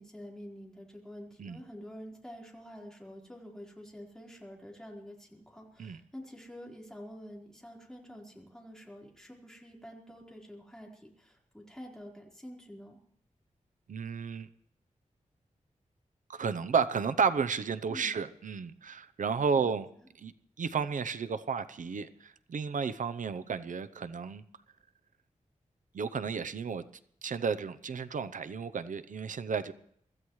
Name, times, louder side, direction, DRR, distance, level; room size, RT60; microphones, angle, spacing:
voice 1, 0.0-13.0 17.9-18.2 19.6-19.8, equal, 5° left, -2 dB, 4.3 m, -48 dB
voice 2, 13.9-14.5 16.3-19.9 20.2-20.3 20.6-24.4 25.9-26.8 27.2-29.7, right 5 dB, 80° right, 12 dB, 0.7 m, -32 dB
24.5 x 15.0 x 3.2 m, 0.68 s
wide cardioid pair, 120°, 13 cm